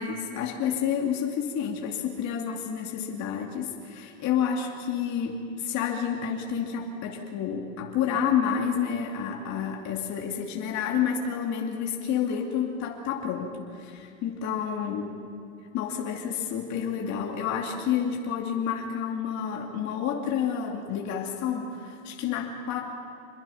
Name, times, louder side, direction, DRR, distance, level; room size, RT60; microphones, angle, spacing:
voice 1, 0.0-15.2 15.7-22.8, left 8 dB, 45° left, 1 dB, 2.5 m, -29 dB
26.5 x 21.5 x 5.7 m, 2.4 s
supercardioid pair, 115°, 39 cm